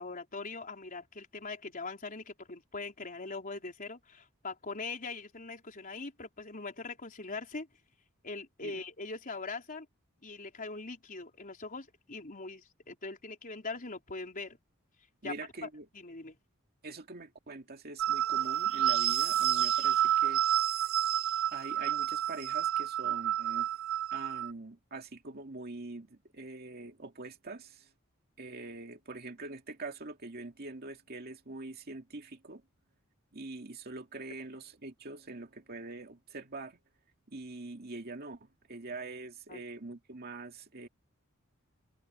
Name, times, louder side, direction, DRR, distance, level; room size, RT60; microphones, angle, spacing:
voice 1, 0.0-7.7 8.2-9.9 10.2-14.6 15.2-15.3 15.6-15.7 15.9-16.4 23.0-23.1 39.5-39.6, left 3 dB, 40° left, 4.3 m, -41 dB
voice 2, 15.2-15.9 16.8-20.4 21.5-23.7 24.1-27.9 28.4-32.6 33.3-36.8 37.3-40.9, right 3 dB, 45° right, 2.3 m, -44 dB
sound 1, 18.0-24.5, right 12 dB, 70° right, 0.6 m, -29 dB
open air
head